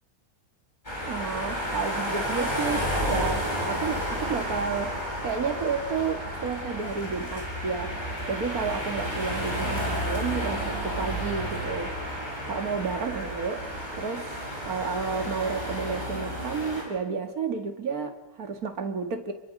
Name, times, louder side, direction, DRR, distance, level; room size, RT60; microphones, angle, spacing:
sound 1, 0.8-16.8, equal, 25° left, 8.1 m, -31 dB
voice 1, 1.0-8.0 8.3-11.9 12.5-19.3, right 5 dB, 60° right, 6 dB, 2.5 m, -31 dB
29.5 x 23.0 x 6.6 m, 0.94 s
omnidirectional pair, 1.8 m